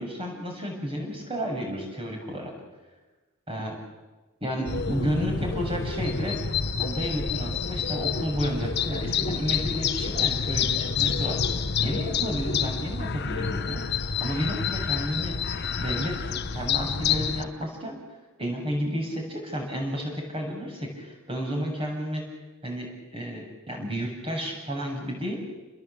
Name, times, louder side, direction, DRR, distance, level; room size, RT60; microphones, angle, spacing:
voice 1, 0.0-2.5 3.5-3.7 4.4-6.4 6.8-13.8 14.2-15.4 15.8-18.0 18.4-22.2 22.6-25.4, equal, 25° right, 1 dB, 7.5 m, -32 dB
sound 1, 4.6-17.4, left 6 dB, 50° left, 1.1 m, -28 dB
29.0 x 21.5 x 8.7 m, 1.2 s
head